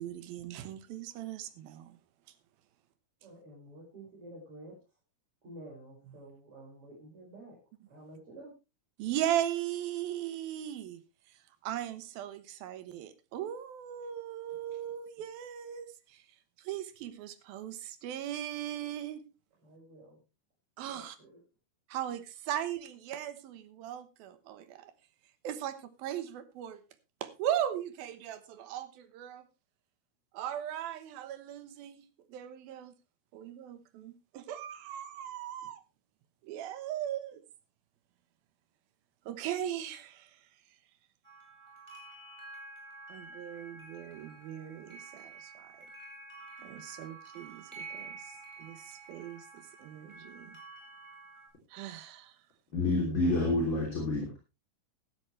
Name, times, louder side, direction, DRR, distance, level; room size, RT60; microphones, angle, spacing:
voice 1, 0.0-2.0 9.0-11.0 11.3-11.4 11.6-16.2 16.6-19.2 20.8-21.2 21.9-24.9 25.4-26.8 27.2-29.5 30.3-32.9 33.3-35.8 36.4-37.4 39.3-40.5 43.1-45.9 46.6-50.6 51.7-52.4, right 11 dB, 75° right, 2.9 m, -38 dB
voice 2, 3.2-4.7 5.4-7.6 7.9-8.5 19.6-20.2 20.8-21.4, right 1 dB, 35° right, 6.3 m, -50 dB
sound 1, 41.2-51.5, right 3 dB, 5° right, 4.2 m, -49 dB
voice 3, 52.7-54.4, left 2 dB, 30° left, 3.4 m, -28 dB
14.5 x 12.0 x 3.3 m
omnidirectional pair, 4.5 m